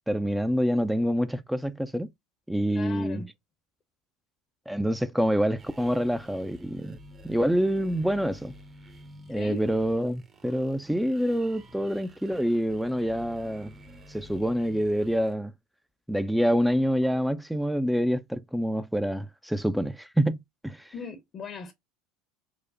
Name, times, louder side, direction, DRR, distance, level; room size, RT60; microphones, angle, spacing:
voice 1, 0.1-2.1 2.5-3.2 4.7-7.0 7.2-8.5 9.3-13.7 14.1-15.5 16.1-20.4 20.6-20.9, equal, 5° right, 0.4 m, -26 dB
voice 2, 2.7-3.3 9.3-9.7 20.9-21.7, left 5 dB, 40° left, 0.7 m, -39 dB
sound 1, 5.6-15.3, equal, 25° right, 0.7 m, -50 dB
4.8 x 2.1 x 2.4 m
hypercardioid pair, 75°, 0 cm